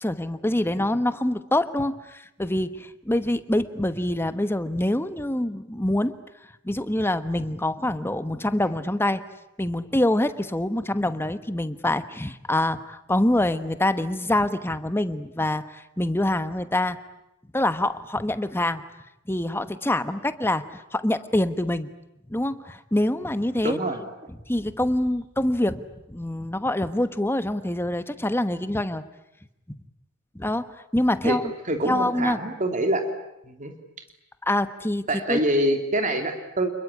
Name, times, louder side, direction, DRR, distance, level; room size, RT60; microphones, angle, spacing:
voice 1, 0.0-6.2 6.6-9.2 9.6-17.0 17.5-18.8 19.3-21.9 22.3-23.8 24.5-25.8 26.1-29.0 30.3-31.5 31.8-32.4 34.4-35.4, left 1 dB, 10° left, 11 dB, 1.1 m, -25 dB
voice 2, 23.6-24.0 31.2-31.4 31.6-33.1 33.4-33.7 35.1-36.7, right 1 dB, 35° right, 5 dB, 3.1 m, -25 dB
28.5 x 21.0 x 9.8 m, 0.87 s
head